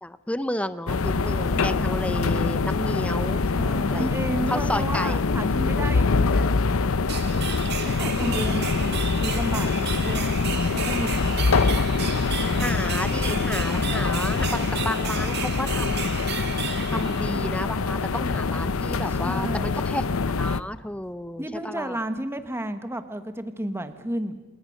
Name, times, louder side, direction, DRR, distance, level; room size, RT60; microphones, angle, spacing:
voice 1, 0.0-3.4 3.9-4.1 4.5-5.2 8.2-8.7 12.6-16.5 16.9-20.0 20.4-22.0, left 1 dB, 5° left, 13 dB, 0.6 m, -32 dB
sound 1, 0.9-20.6, left 4 dB, 85° left, 0.7 m, -24 dB
voice 2, 1.5-2.2 3.5-6.5 7.8-10.3 10.7-11.4 12.5-12.7 19.1-19.8 21.4-24.4, right 1 dB, 10° right, 9 dB, 1.2 m, -32 dB
sound 2, 7.1-17.8, right 8 dB, 50° right, 2.0 m, -34 dB
28.0 x 18.5 x 6.4 m, 1.2 s
head